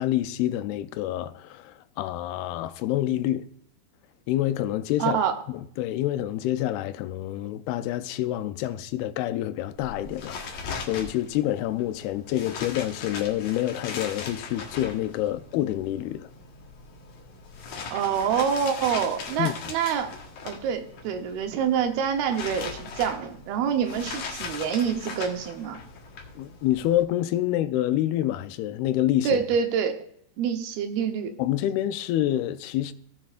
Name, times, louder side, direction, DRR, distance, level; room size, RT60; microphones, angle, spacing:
voice 1, 0.0-3.5 4.3-5.2 5.5-16.3 19.4-19.5 26.4-29.4 31.4-32.9, left 13 dB, 90° left, 2.6 m, -27 dB
voice 2, 5.0-5.3 17.9-20.1 20.4-25.8 29.2-29.9 30.4-31.3, right 7 dB, 85° right, 3.0 m, -26 dB
sound 1, 9.7-27.0, left 5 dB, 60° left, 2.6 m, -39 dB
17.0 x 7.6 x 2.5 m
omnidirectional pair, 4.3 m